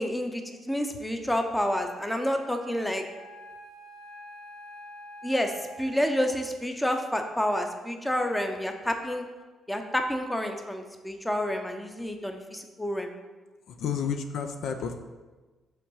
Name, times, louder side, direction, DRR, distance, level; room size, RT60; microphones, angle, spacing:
voice 1, 0.0-3.0 5.2-5.5 5.8-9.3 9.7-13.1, equal, 5° left, 5 dB, 0.7 m, -29 dB
Wind instrument woodwind instrument, 2.1-6.6, right 1 dB, 75° right, 0.9 m, -47 dB
voice 2, 13.7-15.0, left 7 dB, 75° left, 6 dB, 0.5 m, -31 dB
5.7 x 3.6 x 5.5 m, 1.3 s
cardioid pair, 90°, 0 cm